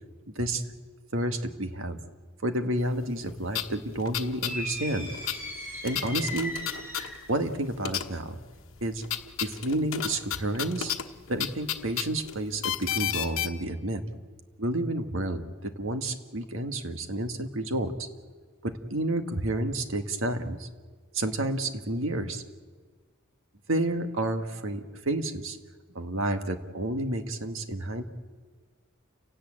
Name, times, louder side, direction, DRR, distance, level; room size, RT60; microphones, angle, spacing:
voice 1, 1.1-2.0 2.4-5.1 5.8-6.5 7.3-8.3 8.8-9.0 9.4-10.9 11.3-14.0 14.6-17.9 18.6-20.7 21.1-22.4 23.7-25.6 26.0-28.0, right 1 dB, 70° right, 7 dB, 1.8 m, -30 dB
sound 1, 3.1-3.2 3.5-7.5 7.8-8.4 8.7-13.5, left 10 dB, 75° left, 1.1 m, -33 dB
sound 2, 4.4-7.3, equal, 10° right, 8.0 m, -37 dB
29.0 x 17.5 x 8.9 m, 1.4 s
head